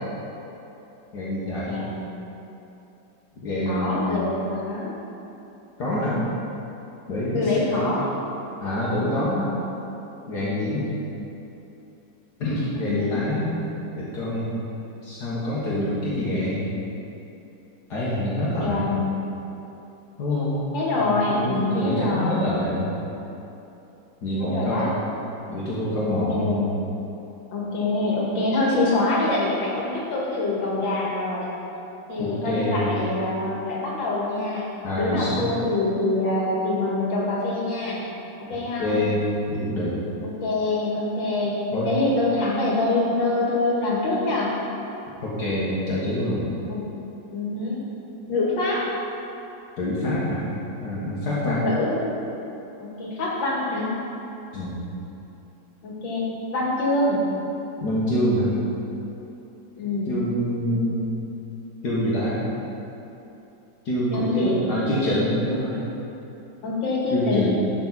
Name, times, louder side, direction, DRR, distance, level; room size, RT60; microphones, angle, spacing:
voice 1, 1.1-1.8 3.4-4.3 5.8-6.2 7.1-7.9 8.6-9.5 10.3-10.9 12.4-13.7 13.9-14.7 15.0-16.6 17.9-18.9 20.2-20.6 21.0-22.9 24.2-24.9 25.5-26.7 32.2-33.0 34.8-35.5 38.8-40.0 41.7-41.9 45.2-46.4 49.8-50.5 50.8-51.6 54.5-54.8 57.8-58.5 60.1-61.1 61.8-62.5 63.9-65.8 67.1-67.5, left 1 dB, 60° left, -8 dB, 2.0 m, -26 dB
voice 2, 1.6-2.1 3.7-5.0 7.3-8.1 10.6-10.9 12.8-13.3 18.6-19.2 20.7-22.5 24.4-24.9 26.1-26.6 27.5-31.5 32.1-34.7 35.0-38.0 38.5-39.0 40.2-41.6 41.8-44.6 46.7-46.9 47.3-47.8 48.3-48.9 51.6-52.2 52.8-53.9 55.8-57.2 59.8-60.2 64.1-64.6 66.6-67.5, left 2 dB, 80° left, -5 dB, 2.4 m, -25 dB
11.5 x 6.1 x 4.1 m, 2.9 s
omnidirectional pair, 2.0 m